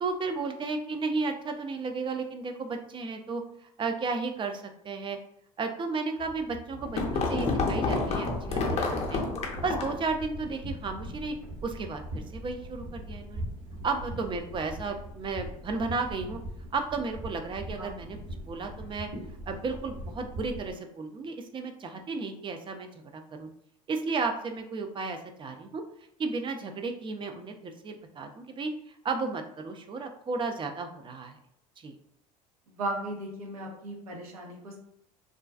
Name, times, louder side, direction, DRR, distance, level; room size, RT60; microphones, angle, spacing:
voice 1, 0.0-3.4 3.8-5.2 5.6-9.2 9.6-11.3 11.6-13.4 13.8-16.4 16.7-18.2 18.4-19.1 19.5-23.5 23.9-25.8 26.2-28.7 29.0-31.4 31.8-31.9, right 4 dB, 30° right, 5 dB, 0.4 m, -33 dB
Falling Rock, 6.3-10.1, left 3 dB, 40° left, 0.6 m, -29 dB
sound 1, 6.8-20.7, equal, 55° right, 1.2 m, -41 dB
voice 2, 32.7-34.8, right 1 dB, 85° right, -1 dB, 0.7 m, -36 dB
2.4 x 2.2 x 2.3 m, 0.74 s
hypercardioid pair, 75°, 18 cm